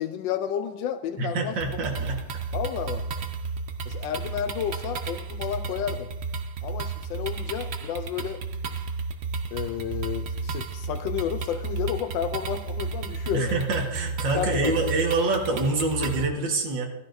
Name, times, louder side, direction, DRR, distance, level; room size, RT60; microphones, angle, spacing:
voice 1, 0.0-1.6 2.5-3.1 3.9-6.1 6.6-8.4 9.5-13.6 14.3-14.7, left 9 dB, 85° left, 9 dB, 1.3 m, -31 dB
voice 2, 1.2-2.2 13.3-16.9, right 3 dB, 75° right, 1 dB, 2.1 m, -26 dB
sound 1, 1.6-16.3, right 4 dB, 55° right, 0.7 m, -32 dB
16.5 x 12.5 x 2.6 m, 1.0 s
omnidirectional pair, 2.0 m